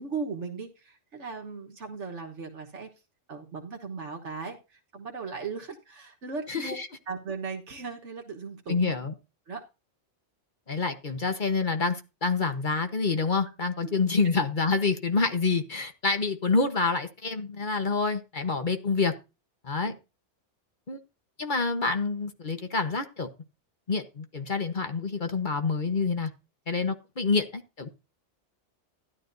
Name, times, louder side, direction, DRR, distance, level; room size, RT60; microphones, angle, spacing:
voice 1, 0.0-2.9 3.3-6.8 7.1-8.9 9.5-9.6 13.8-13.9 19.8-20.0, right 4 dB, 75° right, 1.6 m, -37 dB
voice 2, 6.5-6.9 8.7-9.1 10.7-19.1 19.6-19.9 20.9-21.0 21.4-23.3 23.9-26.3 26.7-27.9, left 4 dB, 45° left, 1.3 m, -27 dB
13.0 x 11.0 x 2.7 m
omnidirectional pair, 1.2 m